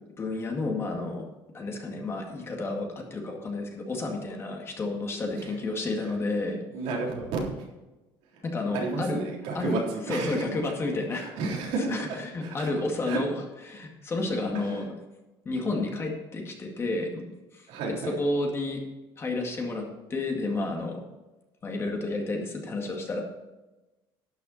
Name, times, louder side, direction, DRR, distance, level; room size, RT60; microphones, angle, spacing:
voice 1, 0.2-1.2 1.5-6.6 8.4-9.2 9.5-11.3 11.9-13.4 13.7-14.9 15.5-17.2 17.5-17.7 18.1-18.8 19.2-21.0 21.6-23.2, left 2 dB, 25° left, 1 dB, 2.1 m, -31 dB
voice 2, 6.7-7.6 8.7-10.5 11.1-12.7 13.1-13.2 17.7-18.2, right 3 dB, 80° right, -2 dB, 3.5 m, -32 dB
12.0 x 9.3 x 4.3 m, 1.1 s
cardioid pair, 155°, 10 cm